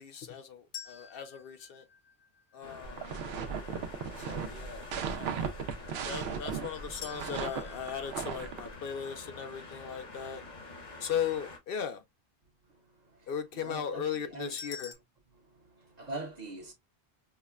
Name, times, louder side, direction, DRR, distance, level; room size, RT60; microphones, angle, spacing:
voice 1, 0.0-1.9 2.5-3.1 4.2-4.8 5.1-5.6 6.1-10.4 11.0-12.0 13.3-14.9, left 8 dB, 65° left, 0.7 m, -37 dB
sound 1, 0.7-2.8 7.0-10.1 14.6-14.9, left 7 dB, 85° left, 1.0 m, -48 dB
sound 2, 2.6-11.6, left 3 dB, 45° left, 1.0 m, -47 dB
sound 3, 2.8-8.7, right 7 dB, 75° right, 0.8 m, -37 dB
voice 2, 12.6-14.6 15.3-16.7, right 2 dB, 45° right, 0.9 m, -44 dB
5.6 x 2.1 x 2.2 m
omnidirectional pair, 1.1 m